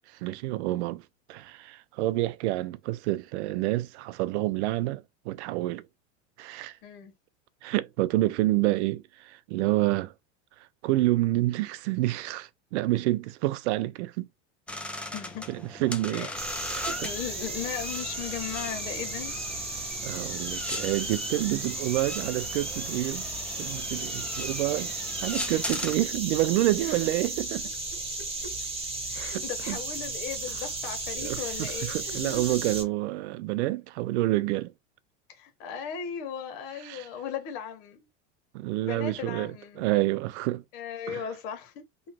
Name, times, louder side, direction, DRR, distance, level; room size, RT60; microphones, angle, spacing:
voice 1, 0.1-1.0 1.3-5.9 6.4-6.8 7.6-10.1 10.8-14.3 14.9-15.1 15.5-16.3 16.8-17.1 20.0-23.3 23.6-27.7 29.2-29.8 31.1-34.7 36.9-37.1 38.5-40.6 41.1-41.2, right 17 dB, 70° right, 0.6 m, -28 dB
voice 2, 6.8-7.1 15.1-15.5 16.1-16.3 16.8-19.3 20.5-20.6 26.8-27.0 28.4-28.5 29.1-32.6 35.3-38.1 38.8-39.8 40.7-41.8, left 8 dB, 60° left, 1.4 m, -37 dB
sound 1, 14.7-25.9, left 1 dB, 5° left, 0.6 m, -38 dB
sound 2, 16.4-32.8, right 2 dB, 15° right, 1.3 m, -35 dB
3.1 x 2.4 x 4.3 m
hypercardioid pair, 105°, 36 cm